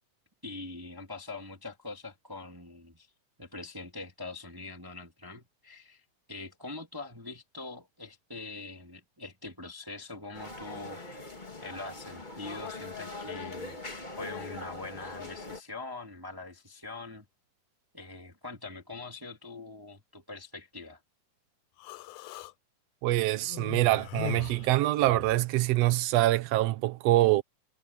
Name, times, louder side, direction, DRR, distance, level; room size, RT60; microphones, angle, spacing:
voice 1, 0.4-3.1 3.4-11.3 11.6-17.3 17.9-21.0, left 3 dB, 10° right, 2.1 m, -43 dB
sound 1, 10.3-15.6, left 3 dB, 15° left, 1.9 m, -41 dB
Human voice, 21.8-22.5 23.5-25.4, left 21 dB, 80° left, 2.0 m, -40 dB
voice 2, 23.0-27.4, right 16 dB, 70° right, 1.6 m, -25 dB
omnidirectional pair, 3.8 m